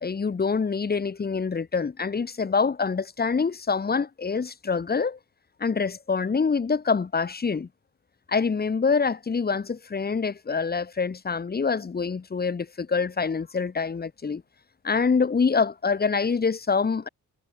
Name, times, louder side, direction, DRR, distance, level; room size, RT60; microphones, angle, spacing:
voice 1, 0.0-5.2 5.6-7.7 8.3-14.4 14.8-17.1, left 5 dB, 30° left, 0.9 m, -25 dB
cardioid pair, 70°, 32 cm